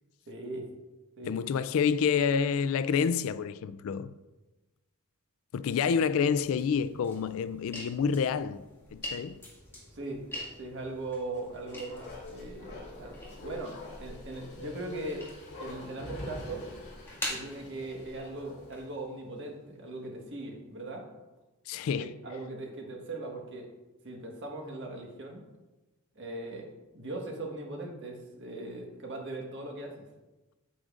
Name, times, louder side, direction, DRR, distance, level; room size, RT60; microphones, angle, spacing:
voice 1, 0.3-0.7 1.2-1.3 5.7-5.8 9.9-10.2 10.6-13.2 13.4-15.3 15.6-16.7 17.3-21.1 22.0-23.7 24.0-25.4 26.1-26.7 26.9-30.0, right 2 dB, 55° right, 1.4 m, -39 dB
voice 2, 1.3-4.1 5.5-8.6 8.9-9.4 21.7-22.1, left 6 dB, 65° left, 0.3 m, -28 dB
sound 1, 6.3-18.9, left 1 dB, 10° left, 1.9 m, -45 dB
Bark, 11.3-18.9 19.2-19.3, left 2 dB, 50° left, 2.7 m, -45 dB
8.6 x 7.8 x 2.5 m
head